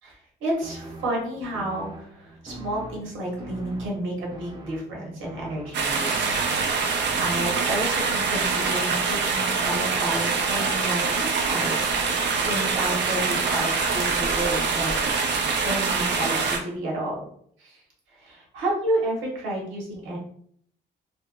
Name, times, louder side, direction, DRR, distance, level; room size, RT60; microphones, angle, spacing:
voice 1, 0.0-6.3 6.8-11.8 12.4-14.9 15.6-17.2 17.6-17.8 18.1-20.2, right 1 dB, 90° right, -3 dB, 1.4 m, -31 dB
sound 1, 0.6-8.0, right 1 dB, 20° right, 0.8 m, -42 dB
sound 2, 5.7-16.6, right 5 dB, 60° right, 0.6 m, -24 dB
3.3 x 2.9 x 2.4 m, 0.63 s
cardioid pair, 90°, 20 cm